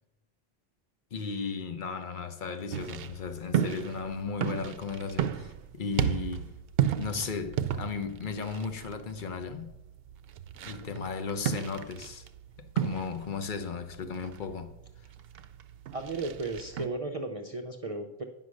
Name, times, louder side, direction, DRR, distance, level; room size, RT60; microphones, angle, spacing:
voice 1, 1.1-6.5 7.0-9.7 10.6-12.2 12.6-14.7, left 5 dB, 55° left, 1.0 m, -35 dB
sound 1, 2.7-16.9, right 9 dB, 70° right, 0.8 m, -34 dB
voice 2, 15.9-18.2, right 3 dB, 40° right, 0.7 m, -35 dB
9.7 x 5.6 x 6.3 m
omnidirectional pair, 1.1 m